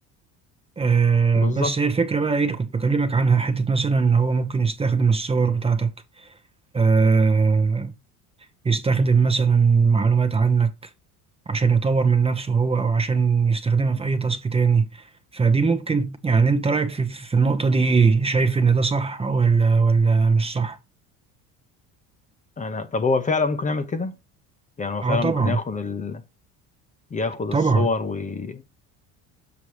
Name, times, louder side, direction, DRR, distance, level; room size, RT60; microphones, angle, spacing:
voice 1, 0.8-5.9 6.2-6.3 6.7-7.9 8.6-10.7 11.5-15.1 15.3-20.8 25.0-25.6 27.5-27.9, right 5 dB, 15° right, 0.8 m, -20 dB
voice 2, 1.4-1.7 22.6-24.1 24.8-26.2 27.1-28.6, left 4 dB, 20° left, 0.8 m, -26 dB
7.0 x 6.0 x 3.1 m
cardioid pair, 115°, 34 cm